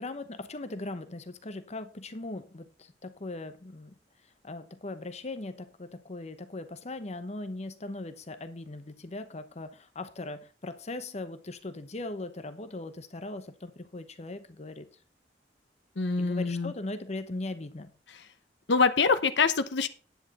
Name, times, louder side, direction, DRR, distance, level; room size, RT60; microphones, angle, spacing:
voice 1, 0.0-3.9 4.4-14.9 16.2-17.9, left 2 dB, 40° left, 10 dB, 0.9 m, -39 dB
voice 2, 16.0-16.7 18.1-18.2 18.7-19.9, left 4 dB, 80° left, 10 dB, 0.9 m, -25 dB
10.0 x 8.9 x 4.2 m, 0.35 s
head